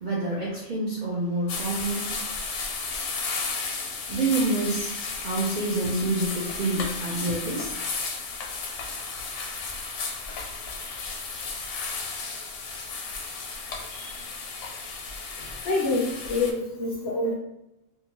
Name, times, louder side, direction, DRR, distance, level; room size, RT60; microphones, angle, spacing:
voice 1, 0.0-2.1 4.1-7.8, right 2 dB, 55° right, -6 dB, 0.5 m, -27 dB
sound 1, 1.5-16.5, left 4 dB, 85° left, 1.0 m, -34 dB
voice 2, 15.6-17.3, left 2 dB, 65° left, -2 dB, 0.7 m, -27 dB
2.7 x 2.3 x 2.9 m, 0.88 s
omnidirectional pair, 1.4 m